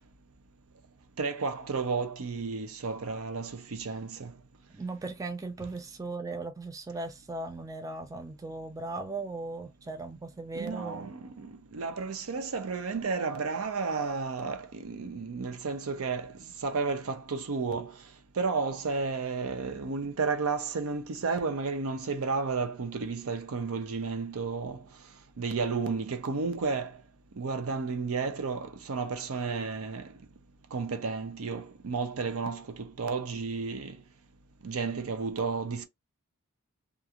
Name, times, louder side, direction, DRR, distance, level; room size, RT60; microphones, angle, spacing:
voice 1, 1.2-4.3 10.5-16.3 16.6-17.9 18.4-24.8 25.4-26.9 27.4-30.1 30.7-34.0 34.6-35.9, right 4 dB, 65° right, 0.6 m, -32 dB
voice 2, 4.7-11.1, right 3 dB, 15° right, 0.3 m, -38 dB
2.4 x 2.4 x 2.7 m
head